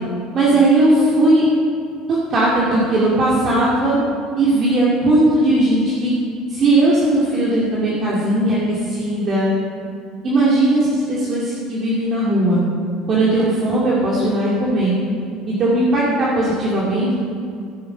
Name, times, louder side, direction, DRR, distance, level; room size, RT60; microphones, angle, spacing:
voice 1, 0.3-1.4 2.1-4.0 4.4-6.1 6.5-9.5 10.2-12.6 13.1-14.9 15.5-17.1, right 1 dB, 40° right, -6 dB, 2.1 m, -17 dB
14.5 x 5.7 x 5.5 m, 2.4 s
supercardioid pair, 105°, 0 cm